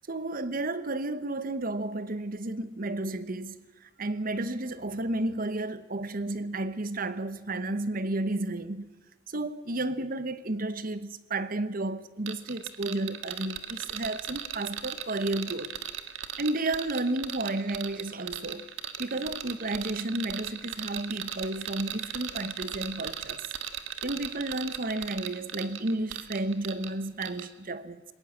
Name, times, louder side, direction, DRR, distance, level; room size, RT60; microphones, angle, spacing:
voice 1, 0.1-8.8 9.3-15.7 16.4-18.7 19.0-23.4 24.0-28.0, right 2 dB, 50° right, 1.1 m, -32 dB
sound 1, 12.3-26.9 27.2-27.5, right 10 dB, 90° right, 1.6 m, -37 dB
21.0 x 18.5 x 7.3 m
head